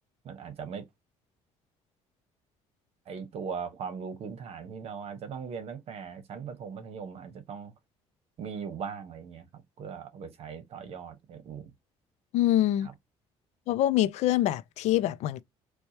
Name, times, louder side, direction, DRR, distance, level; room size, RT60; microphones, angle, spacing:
voice 1, 0.2-0.8 3.1-7.7 8.4-11.7 12.8-12.9, right 6 dB, 60° right, 1.0 m, -39 dB
voice 2, 12.3-12.9 13.7-15.4, left 13 dB, 70° left, 0.4 m, -25 dB
4.5 x 2.3 x 2.7 m
cardioid pair, 110°, 12 cm